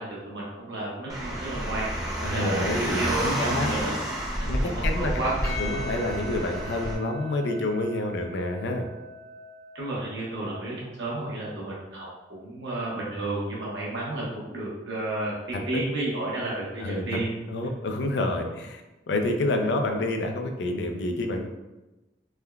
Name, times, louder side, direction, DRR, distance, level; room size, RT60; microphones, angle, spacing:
voice 1, 0.0-1.9 2.3-4.0 4.6-5.3 5.6-6.0 9.7-12.1 12.4-17.3, right 2 dB, 80° right, -6 dB, 1.0 m, -32 dB
Car, 1.1-6.9, equal, 20° right, 0.5 m, -30 dB
voice 2, 2.2-3.7 4.5-5.1 5.6-8.9 16.8-17.2 17.5-18.8 19.1-21.5, left 2 dB, 70° left, 4 dB, 0.4 m, -28 dB
Percussion, 5.4-10.1, left 1 dB, 20° left, 0.9 m, -40 dB
3.4 x 2.2 x 2.2 m, 1.1 s
head